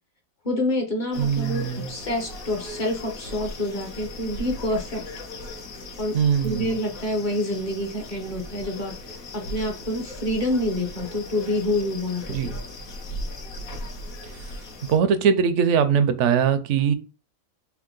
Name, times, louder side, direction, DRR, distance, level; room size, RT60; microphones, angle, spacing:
voice 1, 0.4-5.0 6.0-6.1 6.4-12.5, left 1 dB, 40° left, 0.8 m, -27 dB
sound 1, 1.1-15.0, left 1 dB, 75° left, 1.3 m, -38 dB
voice 2, 1.2-1.9 6.1-6.7 12.3-12.5 14.9-16.9, right 7 dB, 65° right, 0.8 m, -21 dB
3.6 x 2.7 x 3.7 m
omnidirectional pair, 1.5 m